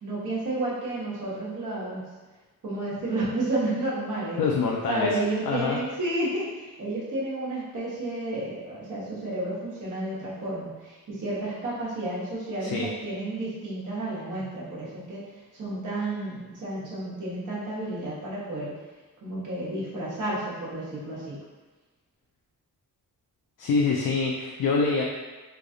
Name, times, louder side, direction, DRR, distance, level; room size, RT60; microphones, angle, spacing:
voice 1, 0.0-2.0 2.6-4.4 4.9-15.2 15.6-18.7 19.2-21.4, right 2 dB, 60° right, -7 dB, 1.3 m, -31 dB
voice 2, 4.4-5.1 5.5-5.8 12.6-12.9 23.6-25.0, left 4 dB, 65° left, -2 dB, 0.5 m, -25 dB
3.3 x 2.3 x 3.8 m, 1.2 s
wide cardioid pair, 165°, 35 cm